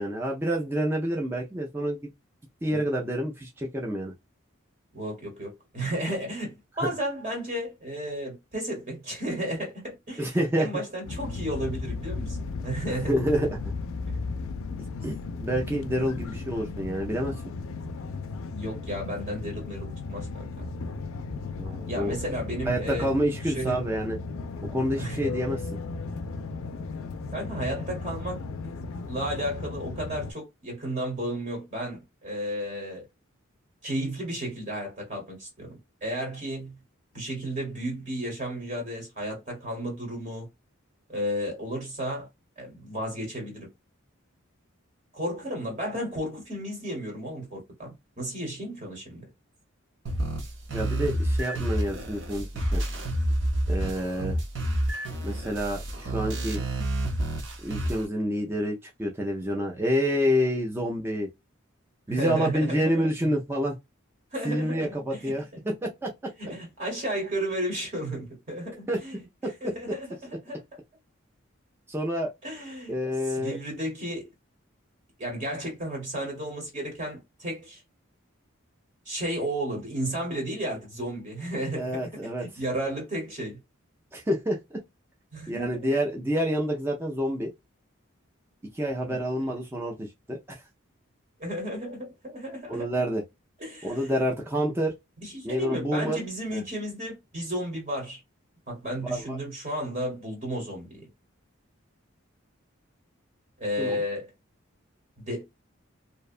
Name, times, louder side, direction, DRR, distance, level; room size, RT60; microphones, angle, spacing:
voice 1, 0.0-2.1 2.6-4.1 10.2-10.7 13.1-13.7 15.0-15.2 15.4-17.3 21.6-22.1 22.6-24.2 24.6-25.6 50.7-52.5 52.7-52.8 53.7-54.4 55.2-56.6 57.6-61.3 62.1-63.7 64.4-66.1 68.9-69.0 71.9-72.3 72.9-73.6 81.8-82.5 84.1-84.8 85.5-87.5 88.7-90.6 92.7-93.2 93.8-94.9 95.4-96.2 96.5-96.6 99.0-99.4 103.8-104.0, equal, 10° right, 0.4 m, -28 dB
voice 2, 4.9-13.1 14.1-14.2 18.5-20.7 21.9-23.1 23.5-23.8 25.0-25.3 27.3-28.4 29.0-33.0 33.8-36.7 37.1-40.5 41.1-42.3 42.6-43.7 45.1-49.2 62.1-63.1 64.3-65.6 66.4-69.3 69.6-70.1 70.4-70.6 72.4-73.0 73.3-74.3 75.2-77.8 79.1-82.1 82.4-83.6 85.3-85.9 89.1-89.3 91.4-93.0 93.6-94.2 95.2-98.2 98.7-101.1 103.6-104.3 105.2-105.4, right 1 dB, 35° right, 1.0 m, -33 dB
sound 1, 11.0-30.3, left 3 dB, 75° left, 0.4 m, -35 dB
sound 2, 50.1-58.1, right 1 dB, 60° right, 0.7 m, -29 dB
2.7 x 2.2 x 2.4 m
head